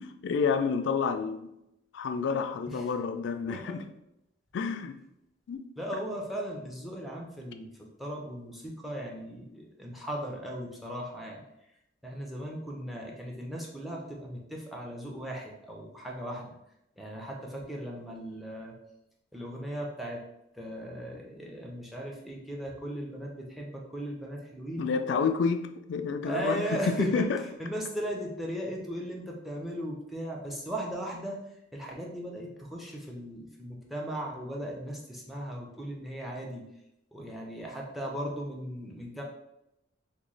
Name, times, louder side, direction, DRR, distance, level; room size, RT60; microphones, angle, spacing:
voice 1, 0.0-1.5 1.9-3.8 4.5-5.0 5.5-5.6 24.8-27.3, left 5 dB, 65° left, 8 dB, 0.3 m, -29 dB
voice 2, 3.5-3.8 5.8-7.7 8.0-11.4 12.0-16.5 17.0-18.7 19.3-20.2 20.5-24.9 26.2-27.3 27.6-31.4 31.7-36.6 37.1-39.2, equal, ahead, -1 dB, 0.5 m, -37 dB
3.0 x 2.2 x 3.8 m, 0.84 s
head